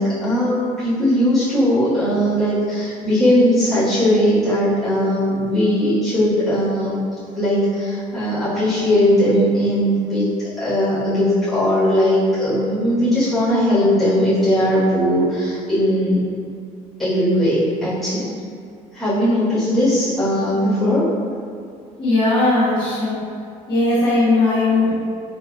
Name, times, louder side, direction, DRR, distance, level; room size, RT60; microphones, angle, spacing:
voice 1, 0.0-7.0 7.3-10.2 10.6-16.2 17.0-18.3 18.9-21.1, equal, ahead, -17 dB, 1.4 m, -18 dB
voice 2, 22.0-23.2 23.7-24.9, left 2 dB, 35° left, -13 dB, 1.5 m, -18 dB
3.8 x 3.4 x 2.3 m, 2.3 s
cardioid pair, 160°, 14 cm